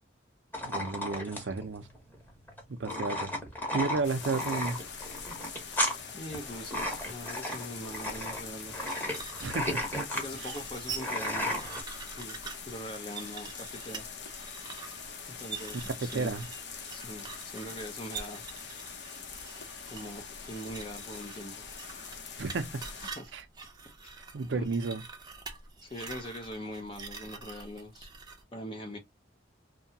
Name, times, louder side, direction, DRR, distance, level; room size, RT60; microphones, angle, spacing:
sound 1, 0.5-11.8, left 1 dB, 10° left, 0.9 m, -34 dB
voice 1, 0.6-1.9 2.7-3.3 3.7-4.8 9.4-9.7 10.4-10.5 16.0-16.4 22.4-22.7 23.3-23.4 24.3-25.0, right 3 dB, 80° right, 0.5 m, -32 dB
sound 2, 4.0-23.1, left 6 dB, 65° left, 0.7 m, -43 dB
voice 2, 6.1-9.0 10.1-11.7 12.2-14.1 15.3-16.3 16.9-18.5 19.9-21.6 23.0-23.3 24.0-24.1 24.5-24.7 25.8-28.1 28.5-29.0, equal, 30° left, 0.5 m, -42 dB
sound 3, 8.7-28.4, right 5 dB, 20° right, 0.6 m, -45 dB
2.7 x 2.2 x 2.6 m
head